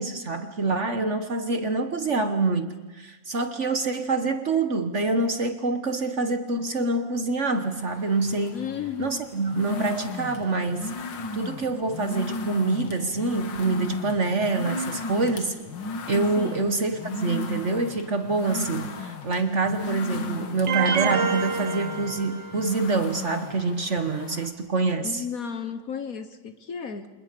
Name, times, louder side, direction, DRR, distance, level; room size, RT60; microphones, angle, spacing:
voice 1, 0.0-8.6 9.0-10.9 11.3-15.6 16.1-25.2, right 3 dB, 45° right, 8 dB, 1.3 m, -26 dB
sound 1, 7.6-24.5, left 3 dB, 80° left, 2.2 m, -36 dB
voice 2, 8.5-9.2 16.4-16.7 25.0-27.1, left 7 dB, 55° left, 9 dB, 1.5 m, -34 dB
sound 2, 20.7-22.8, right 6 dB, 70° right, 1.8 m, -27 dB
29.0 x 27.5 x 5.3 m, 1.1 s
omnidirectional pair, 2.0 m